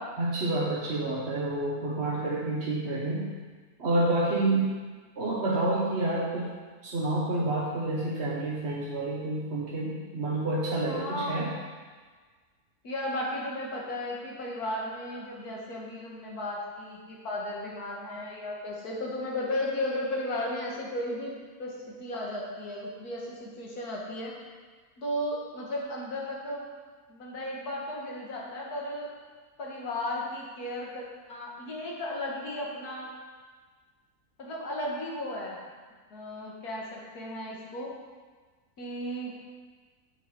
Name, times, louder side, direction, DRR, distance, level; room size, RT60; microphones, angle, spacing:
voice 1, 0.2-3.3 3.8-4.8 5.2-6.5 6.8-11.5, right 2 dB, 50° right, -5 dB, 1.3 m, -28 dB
voice 2, 10.9-11.4 12.8-21.3 21.6-24.3 25.0-26.6 27.1-29.1 29.6-31.0 31.3-33.1 34.4-35.6 36.1-37.9 38.8-39.3, left 1 dB, 75° left, -3 dB, 2.1 m, -35 dB
7.2 x 6.7 x 4.6 m, 1.5 s
omnidirectional pair, 1.6 m